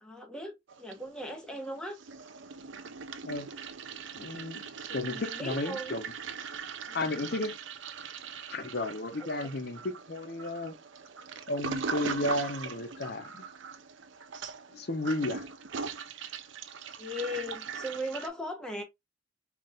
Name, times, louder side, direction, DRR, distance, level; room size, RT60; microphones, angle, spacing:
voice 1, 0.0-2.0 4.9-5.9 6.9-7.2 9.2-9.5 17.0-18.8, left 1 dB, 5° left, 1.1 m, -38 dB
Toilet flush, 0.7-1.5 1.8-18.3, right 5 dB, 70° right, 0.6 m, -40 dB
voice 2, 4.1-6.0 6.9-7.5 8.5-10.8 11.5-13.4 14.7-15.5, left 2 dB, 55° left, 0.8 m, -33 dB
4.7 x 2.5 x 3.5 m
head